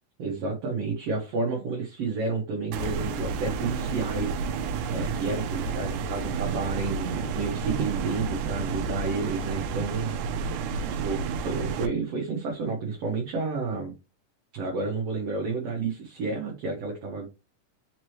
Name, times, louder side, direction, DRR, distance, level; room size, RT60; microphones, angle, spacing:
voice 1, 0.2-4.4 4.9-10.2 10.9-13.9 14.5-17.2, right 4 dB, 65° right, 0 dB, 1.7 m, -30 dB
sound 1, 2.7-11.9, right 5 dB, 80° right, 1.9 m, -31 dB
5.2 x 3.0 x 3.0 m, 0.28 s
omnidirectional pair, 3.7 m